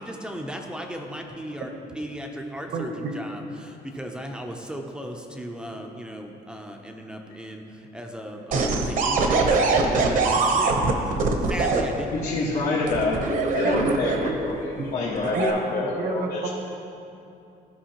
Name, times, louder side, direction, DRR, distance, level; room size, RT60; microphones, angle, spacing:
voice 1, 0.0-10.8 11.1-12.2, equal, 5° right, 2 dB, 0.5 m, -36 dB
voice 2, 2.7-3.1 13.6-13.9 14.3-14.4 14.8-14.9 15.4-15.6 16.0-16.5, right 3 dB, 80° right, 2 dB, 1.1 m, -30 dB
sound 1, 8.5-11.8 12.9-14.5 15.2-15.5, right 4 dB, 55° right, 0.8 m, -22 dB
voice 3, 12.1-16.5, left 2 dB, 75° left, -6 dB, 1.4 m, -27 dB
14.0 x 5.3 x 2.9 m, 2.7 s
cardioid pair, 165°, 17 cm